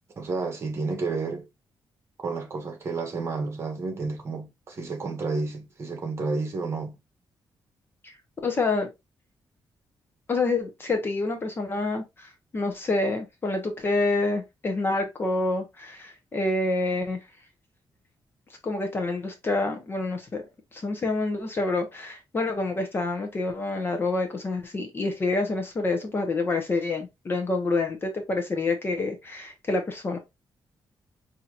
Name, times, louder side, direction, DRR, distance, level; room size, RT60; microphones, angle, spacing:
voice 1, 0.2-1.5 2.2-6.9, right 3 dB, 35° right, 1.2 m, -31 dB
voice 2, 8.4-8.9 10.3-17.2 18.6-20.4 20.7-30.2, left 3 dB, 25° left, 0.8 m, -27 dB
5.6 x 2.8 x 2.4 m
wide cardioid pair, 175°, 8 cm